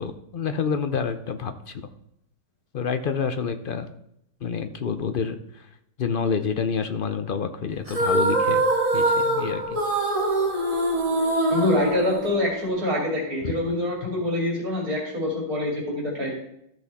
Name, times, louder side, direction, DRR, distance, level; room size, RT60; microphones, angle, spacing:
voice 1, 0.0-1.9 2.7-3.9 4.4-5.7 6.0-8.6 8.9-9.8 13.4-13.5, left 6 dB, 55° left, 9 dB, 0.6 m, -28 dB
sound 1, 7.9-12.7, right 1 dB, 20° right, 2.0 m, -23 dB
voice 2, 11.5-16.3, left 1 dB, 70° right, -3 dB, 3.1 m, -25 dB
13.5 x 6.1 x 4.1 m, 0.76 s
omnidirectional pair, 1.6 m